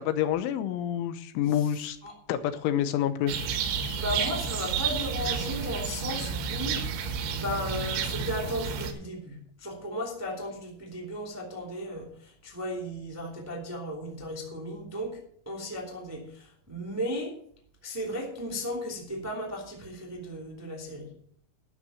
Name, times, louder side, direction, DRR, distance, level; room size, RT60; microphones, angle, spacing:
voice 1, 0.0-2.0 2.3-3.3, left 10 dB, 85° left, 10 dB, 3.4 m, -28 dB
voice 2, 1.5-2.1 4.0-6.8 7.3-17.3 17.8-21.1, equal, 5° right, -1 dB, 1.1 m, -35 dB
sound 1, 3.3-8.9, right 6 dB, 75° right, 3.6 m, -31 dB
12.0 x 6.7 x 7.0 m, 0.63 s
omnidirectional pair, 5.6 m